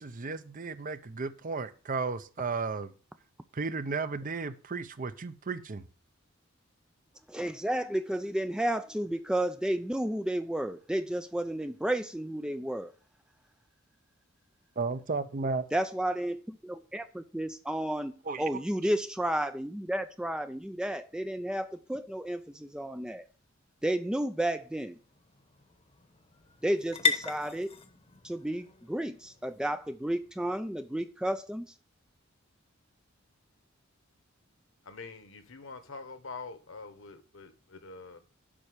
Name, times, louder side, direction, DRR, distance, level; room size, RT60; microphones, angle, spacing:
voice 1, 0.0-2.9 3.5-5.8 14.8-15.7 18.3-18.4, right 4 dB, 40° right, 0.6 m, -34 dB
voice 2, 7.3-12.9 15.7-23.3 23.8-25.0 26.6-27.8 28.2-31.7, right 1 dB, 5° right, 0.4 m, -32 dB
sound 1, 23.4-31.3, left 5 dB, 30° left, 0.9 m, -38 dB
voice 3, 34.8-38.2, left 4 dB, 70° left, 1.2 m, -45 dB
7.5 x 5.5 x 6.6 m
head